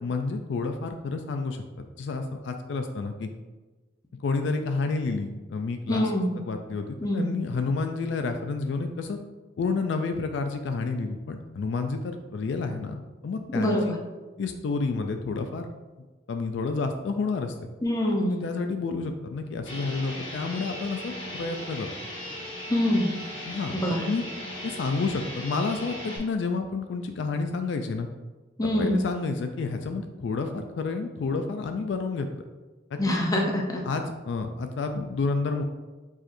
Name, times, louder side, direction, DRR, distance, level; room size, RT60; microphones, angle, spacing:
voice 1, 0.0-3.3 4.1-6.1 6.5-9.2 9.6-13.9 14.4-15.7 16.3-17.5 18.2-21.9 23.5-24.2 24.6-28.1 28.6-32.4 32.9-33.2 33.8-35.6, left 4 dB, 65° left, 6 dB, 0.3 m, -30 dB
voice 2, 5.9-6.4 7.0-7.4 13.5-14.0 17.8-18.5 22.7-23.1 23.7-24.1 28.6-29.0 33.0-33.8, left 1 dB, 20° left, 0 dB, 0.6 m, -25 dB
sound 1, 19.7-26.2, left 1 dB, 85° left, 1.4 m, -38 dB
4.7 x 4.3 x 2.5 m, 1.2 s
head